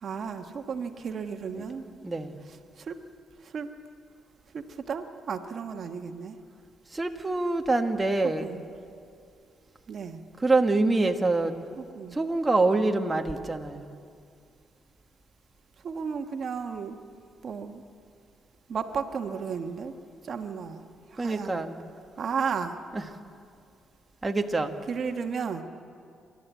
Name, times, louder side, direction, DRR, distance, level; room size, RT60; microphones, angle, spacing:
voice 1, 0.0-1.8 2.8-3.0 3.4-3.7 4.5-6.4 8.2-8.6 9.9-10.2 11.8-12.2 15.8-17.0 17.4-17.8 18.7-19.9 20.2-20.8 21.1-21.6 22.2-22.8 24.9-25.6, right 6 dB, 55° right, 6 dB, 1.3 m, -33 dB
voice 2, 2.0-2.4 6.9-8.5 10.4-11.5 12.1-13.9 21.2-21.8 22.9-23.1 24.2-24.8, right 2 dB, 20° right, 4 dB, 1.3 m, -25 dB
27.5 x 13.0 x 8.3 m, 2.4 s
cardioid pair, 90°, 0 cm